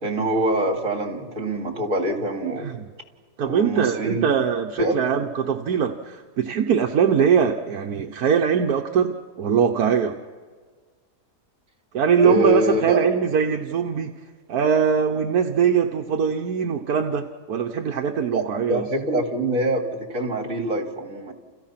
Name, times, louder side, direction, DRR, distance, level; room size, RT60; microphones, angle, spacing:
voice 1, 0.0-2.7 3.5-4.3 4.8-5.0 12.2-13.1 18.3-21.3, right 1 dB, 60° right, 3 dB, 3.4 m, -25 dB
voice 2, 3.4-10.2 11.9-14.1 14.5-18.8, right 7 dB, 80° right, 4 dB, 1.5 m, -22 dB
30.0 x 30.0 x 5.9 m, 1.5 s
omnidirectional pair, 1.6 m